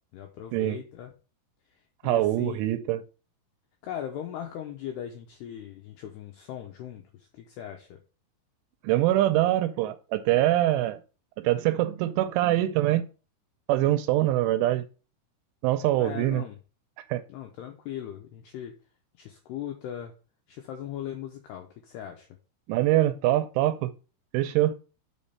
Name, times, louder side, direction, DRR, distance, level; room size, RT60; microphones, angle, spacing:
voice 1, 0.1-1.1 2.0-2.6 3.8-7.9 15.9-16.6 17.3-18.8 19.2-20.1 20.5-22.3, left 10 dB, 85° left, 2.3 m, -39 dB
voice 2, 2.0-3.0 8.8-11.0 11.4-13.1 13.7-14.8 15.6-16.4 17.1-17.2 22.7-23.9 24.3-24.8, right 14 dB, 80° right, 2.9 m, -24 dB
6.3 x 5.3 x 5.5 m
omnidirectional pair, 5.8 m